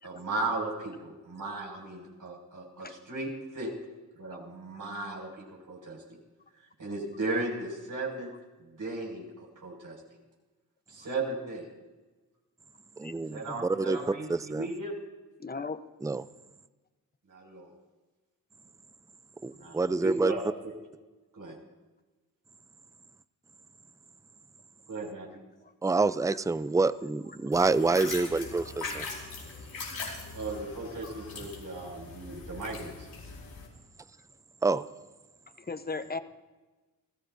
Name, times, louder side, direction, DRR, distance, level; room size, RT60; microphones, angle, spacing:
voice 1, 0.0-3.7 4.1-6.2 6.8-8.3 8.6-10.0 10.9-11.6 13.2-14.9 17.3-17.7 19.5-20.7 21.3-21.6 24.9-25.3 30.3-32.9, right 2 dB, 60° right, -1 dB, 6.2 m, -36 dB
voice 2, 13.0-14.0 14.3-14.7 16.0-16.3 19.4-20.3 25.8-29.1 34.6-34.9, right 3 dB, 10° right, 15 dB, 0.5 m, -27 dB
voice 3, 15.4-15.8 25.6-25.7 29.9-30.0 31.8-31.9 35.6-36.2, left 4 dB, 25° left, 10 dB, 1.0 m, -36 dB
sound 1, 27.5-33.7, left 4 dB, 80° left, 5.2 m, -41 dB
26.5 x 15.0 x 2.7 m, 1.2 s
cardioid pair, 55°, 36 cm